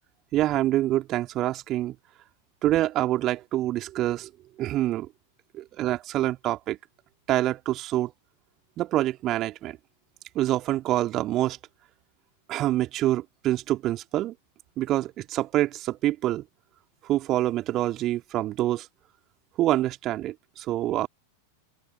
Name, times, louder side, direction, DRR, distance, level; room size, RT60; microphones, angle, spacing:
voice 1, 0.3-1.9 2.6-4.3 4.6-5.1 5.5-6.8 7.3-8.1 8.8-9.8 10.3-11.6 12.5-14.3 14.8-16.4 17.1-18.9 19.6-21.1, right 14 dB, 35° right, 2.4 m, -26 dB
figure-of-eight pair, 90°, 0 cm